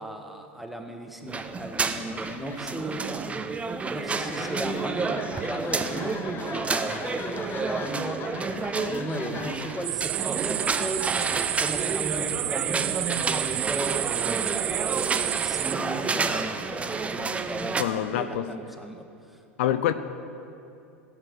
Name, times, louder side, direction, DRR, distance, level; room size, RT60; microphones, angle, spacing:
voice 1, 0.0-3.4 3.9-8.2 8.8-19.4, right 1 dB, ahead, 3 dB, 1.7 m, -37 dB
sound 1, 1.3-17.8, right 4 dB, 20° right, 0.9 m, -30 dB
sound 2, 2.0-13.6, left 6 dB, 35° left, 0.9 m, -42 dB
sound 3, 9.8-15.7, right 18 dB, 60° right, 0.6 m, -30 dB
voice 2, 17.8-18.5 19.6-19.9, left 11 dB, 70° left, 12 dB, 0.7 m, -25 dB
15.5 x 8.2 x 8.2 m, 2.7 s
hypercardioid pair, 85°, 7 cm